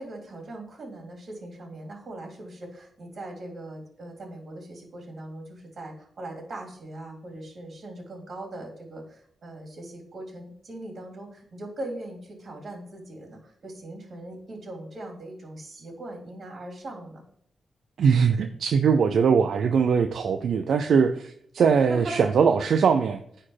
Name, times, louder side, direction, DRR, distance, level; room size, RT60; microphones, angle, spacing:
voice 1, 0.0-17.2 21.8-22.3, right 1 dB, 45° right, 0 dB, 3.6 m, -40 dB
voice 2, 18.0-23.2, right 6 dB, 70° right, 6 dB, 0.6 m, -21 dB
9.7 x 4.4 x 5.8 m, 0.66 s
wide cardioid pair, 120°, 0 cm